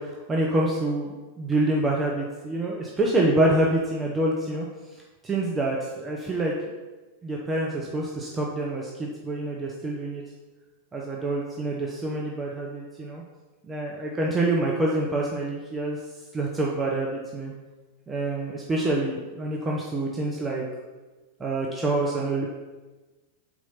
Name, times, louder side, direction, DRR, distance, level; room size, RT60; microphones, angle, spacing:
voice 1, 0.0-4.7 5.2-6.5 7.2-10.2 10.9-13.2 13.6-16.0 16.3-17.5 18.1-20.6 21.4-22.5, right 2 dB, 15° right, -3 dB, 0.8 m, -26 dB
4.4 x 4.3 x 5.5 m, 1.2 s
figure-of-eight pair, 90°, 0 cm